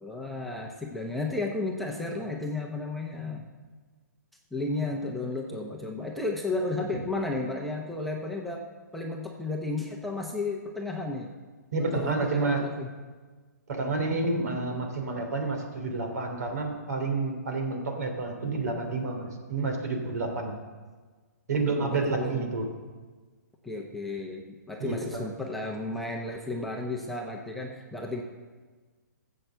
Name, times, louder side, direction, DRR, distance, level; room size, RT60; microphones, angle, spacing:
voice 1, 0.0-3.5 4.5-11.3 11.8-12.9 21.8-22.4 23.6-28.2, left 2 dB, ahead, -1 dB, 0.9 m, -33 dB
voice 2, 11.7-12.6 13.7-20.5 21.5-22.6 24.8-25.3, right 3 dB, 65° right, 5 dB, 3.0 m, -29 dB
15.5 x 7.7 x 6.9 m, 1.4 s
hypercardioid pair, 150°, 10 cm